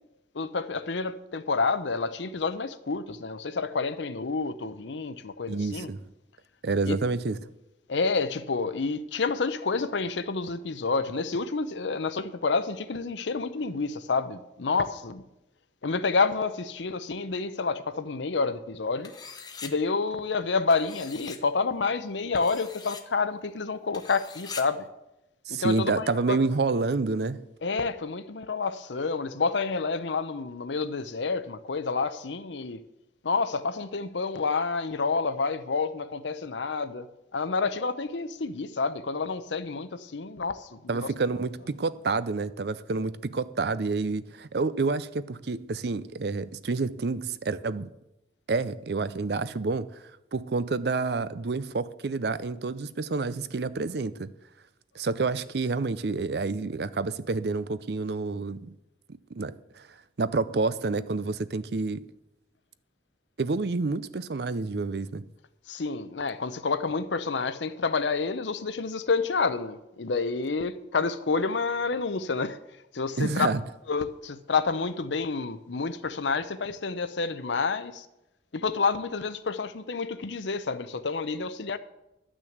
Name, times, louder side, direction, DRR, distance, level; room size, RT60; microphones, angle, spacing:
voice 1, 0.3-5.9 6.9-7.0 7.9-15.2 15.8-19.1 19.6-24.9 25.5-26.4 27.6-32.8 33.2-37.1 37.3-41.1 65.7-72.6 72.9-73.5 73.9-78.1 78.5-81.8, left 4 dB, 85° left, 0.7 m, -29 dB
voice 2, 5.5-6.0 6.6-7.5 25.5-27.4 40.9-47.9 48.5-50.0 50.3-54.3 54.9-58.7 59.3-59.9 60.2-62.1 63.4-65.3 73.2-73.6, right 3 dB, 65° right, 0.5 m, -28 dB
sound 1, 19.0-19.7 20.7-21.4 22.4-23.0 23.9-24.6, left 5 dB, 20° left, 0.8 m, -42 dB
12.0 x 6.2 x 7.9 m
head